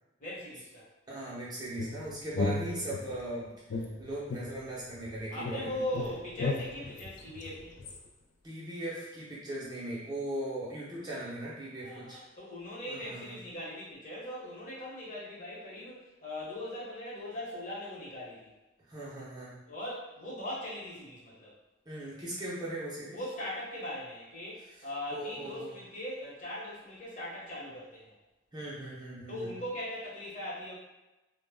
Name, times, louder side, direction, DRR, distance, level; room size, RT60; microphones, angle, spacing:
voice 1, 0.2-0.9 5.3-7.7 11.8-18.5 19.6-21.5 23.1-28.1 29.3-30.7, left 1 dB, 45° left, -7 dB, 0.9 m, -40 dB
voice 2, 1.1-3.5 4.0-5.8 8.4-12.2 12.9-13.4 18.9-19.6 21.9-23.2 25.1-25.7 28.5-29.5, right 1 dB, 20° right, -7 dB, 0.6 m, -39 dB
sound 1, 1.8-3.2 3.7-5.1 5.4-8.0, left 3 dB, 60° left, 0.3 m, -36 dB
2.1 x 2.1 x 3.4 m, 1.0 s
head